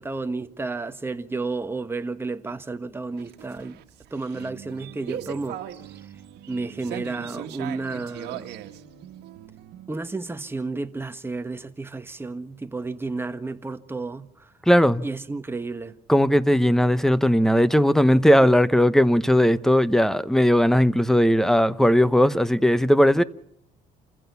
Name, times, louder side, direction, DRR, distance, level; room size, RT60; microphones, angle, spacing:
voice 1, 0.0-3.8 4.1-5.6 6.5-8.5 9.9-14.5 15.0-15.9 23.2-23.3, right 3 dB, 15° right, 1.3 m, -32 dB
sound 1, 3.1-9.9, right 11 dB, 80° right, 1.7 m, -39 dB
voice 2, 14.7-15.0 16.1-23.2, equal, ahead, 0.9 m, -18 dB
28.5 x 15.5 x 7.0 m
cardioid pair, 110°, 17 cm